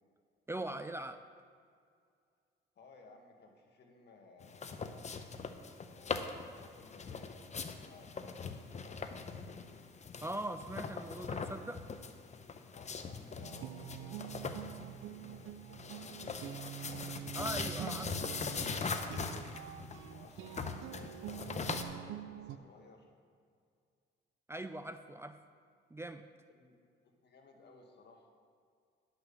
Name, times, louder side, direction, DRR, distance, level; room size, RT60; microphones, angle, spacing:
voice 1, 0.5-1.2 10.2-11.8 17.4-18.1 24.5-25.4 25.9-26.2, right 1 dB, 15° right, 9 dB, 0.4 m, -41 dB
voice 2, 2.8-5.0 5.9-7.3 7.7-9.7 12.7-17.4 19.1-19.6 20.1-23.1 26.5-26.8 27.2-28.3, left 3 dB, 60° left, 2 dB, 1.7 m, -59 dB
sound 1, 4.4-21.8, left 5 dB, 35° left, 0.8 m, -41 dB
sound 2, 13.4-22.6, right 11 dB, 80° right, 0.5 m, -46 dB
10.5 x 6.0 x 7.0 m, 2.2 s
cardioid pair, 90°, 20 cm